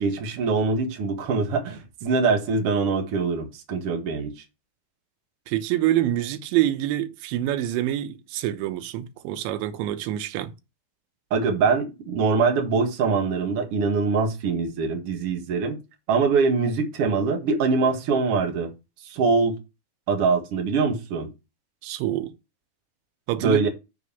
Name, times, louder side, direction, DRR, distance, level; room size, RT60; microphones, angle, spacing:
voice 1, 0.0-4.3 11.3-15.8 16.1-18.7 19.1-19.6 20.1-21.3 23.4-23.7, right 4 dB, 50° right, 1.8 m, -23 dB
voice 2, 5.5-10.5 21.8-22.3 23.3-23.6, right 13 dB, 85° right, 3.3 m, -26 dB
6.8 x 4.8 x 6.9 m
omnidirectional pair, 5.1 m